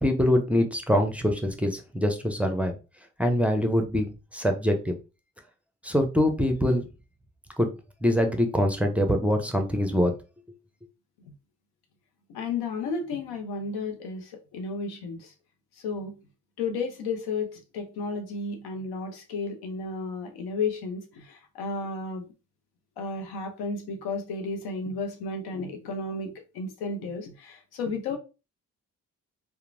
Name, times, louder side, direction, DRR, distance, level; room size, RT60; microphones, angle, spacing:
voice 1, 0.0-2.7 3.2-4.1 4.3-5.0 5.8-6.8 7.6-7.7 8.0-10.1, equal, 5° right, 0.6 m, -24 dB
voice 2, 12.3-15.3 15.8-16.2 16.6-22.3 23.0-28.2, left 4 dB, 80° left, 0.7 m, -33 dB
2.9 x 2.1 x 2.5 m
supercardioid pair, 45°, 38 cm